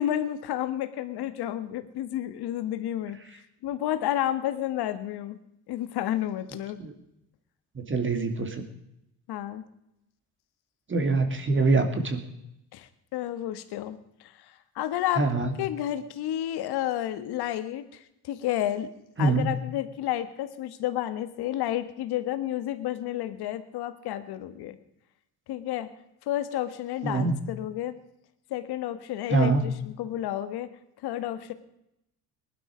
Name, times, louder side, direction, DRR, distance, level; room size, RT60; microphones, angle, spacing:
voice 1, 0.0-3.2 3.6-5.4 5.7-6.8 9.3-9.6 12.7-14.3 14.7-15.3 15.6-17.8 18.2-18.9 19.2-24.8 25.5-25.9 26.3-28.0 28.5-30.7 31.0-31.5, left 12 dB, 70° left, 12 dB, 1.6 m, -31 dB
voice 2, 7.7-8.7 10.9-12.2 15.2-15.5 19.2-19.5 27.0-27.3 29.3-29.6, right 3 dB, 30° right, 6 dB, 2.8 m, -24 dB
19.5 x 12.0 x 5.1 m, 0.82 s
cardioid pair, 90°, 40 cm